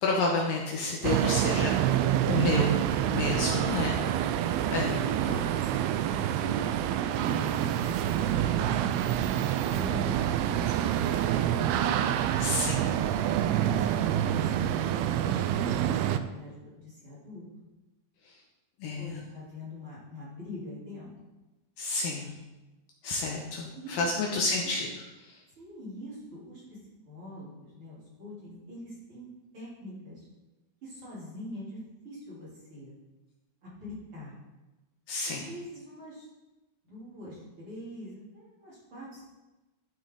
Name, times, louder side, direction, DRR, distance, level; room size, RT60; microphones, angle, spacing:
voice 1, 0.0-2.7 3.1-3.9 4.7-5.0 5.3-5.4 12.4-13.0 18.8-19.2 21.8-22.3 23.0-24.9 35.1-35.5, left 3 dB, 75° left, -1 dB, 2.4 m, -30 dB
sound 1, 1.0-16.2, right 11 dB, 85° right, 2.4 m, -27 dB
voice 2, 5.7-6.7 7.1-7.5 7.8-9.1 9.6-11.2 11.6-12.0 13.7-17.4 19.0-21.1 23.7-24.2 24.6-24.8 25.6-26.8 27.1-29.3 29.5-30.3 30.8-31.8 32.0-32.9 33.6-34.3 35.3-36.3 36.8-39.2, left 1 dB, 35° right, -8 dB, 3.8 m, -44 dB
13.0 x 6.2 x 3.8 m, 1.1 s
omnidirectional pair, 4.5 m